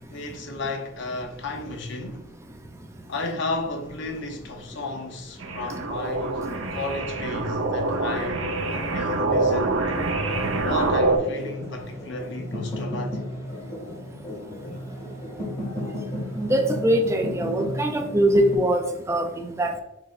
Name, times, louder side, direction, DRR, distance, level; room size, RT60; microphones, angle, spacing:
voice 1, 0.0-2.3 3.1-10.2 10.6-13.2, left 2 dB, 60° left, 0.7 m, -33 dB
sound 1, 5.4-11.2, right 2 dB, 75° right, 0.6 m, -25 dB
sound 2, 10.3-18.6, left 1 dB, 35° left, 1.4 m, -34 dB
voice 2, 16.4-19.8, right 1 dB, 15° right, 0.3 m, -22 dB
4.7 x 4.3 x 2.5 m
head